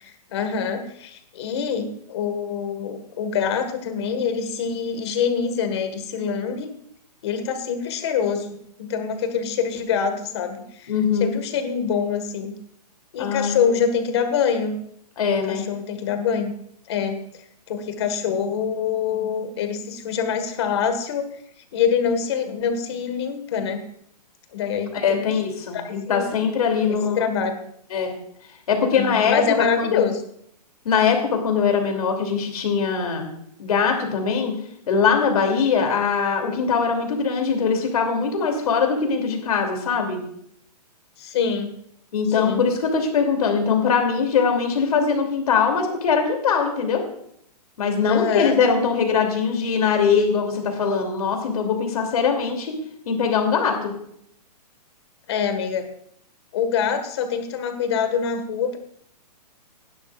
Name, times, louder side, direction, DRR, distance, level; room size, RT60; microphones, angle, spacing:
voice 1, 0.0-6.7 7.2-10.9 11.2-12.5 13.1-14.8 15.5-16.5 16.9-17.2 17.7-21.2 21.7-23.8 24.5-25.3 25.7-26.2 26.9-27.6 28.9-30.2 41.2-41.7 42.4-42.6 48.1-48.6 55.3-55.8 56.5-58.8, left 7 dB, 40° left, 7 dB, 1.7 m, -25 dB
voice 2, 10.9-11.3 13.2-13.6 15.2-15.6 24.9-27.3 27.9-28.1 28.7-30.0 30.8-33.3 33.6-34.6 34.9-40.2 42.1-47.0 47.8-53.9, left 6 dB, 60° left, 3 dB, 2.9 m, -22 dB
17.0 x 11.5 x 2.5 m, 0.70 s
hypercardioid pair, 170°, 21 cm